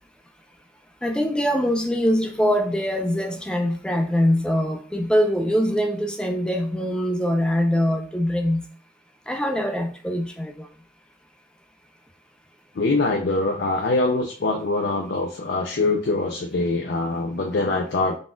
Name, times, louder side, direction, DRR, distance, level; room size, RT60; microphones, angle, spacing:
voice 1, 1.0-8.7 9.3-10.7, equal, 5° left, 4 dB, 0.3 m, -23 dB
voice 2, 12.8-18.2, left 2 dB, 65° left, 2 dB, 0.5 m, -23 dB
4.0 x 2.3 x 3.7 m, 0.42 s
head